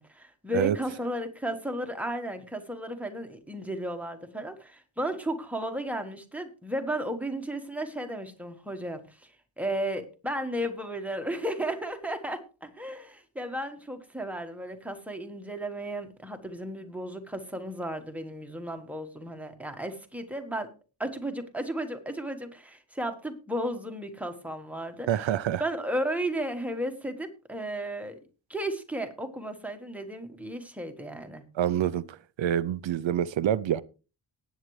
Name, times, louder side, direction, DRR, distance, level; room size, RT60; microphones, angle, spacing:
voice 1, 0.0-9.3 9.6-20.7 21.0-25.1 25.6-28.2 28.5-31.4, right 1 dB, 5° right, 1.4 m, -34 dB
voice 2, 25.1-25.6 31.5-33.8, right 10 dB, 70° right, 0.6 m, -27 dB
18.5 x 8.3 x 3.2 m
wide cardioid pair, 165°, 47 cm